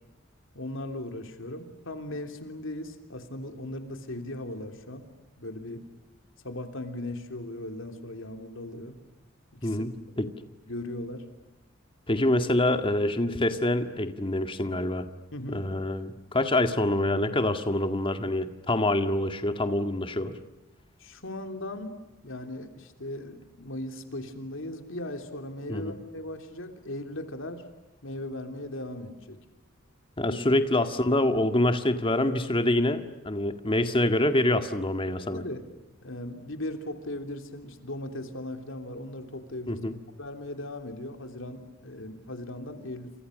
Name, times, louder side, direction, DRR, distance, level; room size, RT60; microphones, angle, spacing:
voice 1, 0.5-5.0 5.4-5.8 6.4-9.0 9.5-9.8 10.7-11.3 15.3-15.7 21.0-27.6 28.0-29.4 30.3-30.4 35.3-35.6 36.0-39.8 40.2-43.1, left 1 dB, 65° left, 6 dB, 3.3 m, -38 dB
voice 2, 12.1-15.0 15.5-20.3 25.7-25.9 30.2-35.4 39.7-40.0, left 1 dB, 25° left, 8 dB, 1.9 m, -26 dB
30.0 x 27.5 x 6.6 m, 1.0 s
head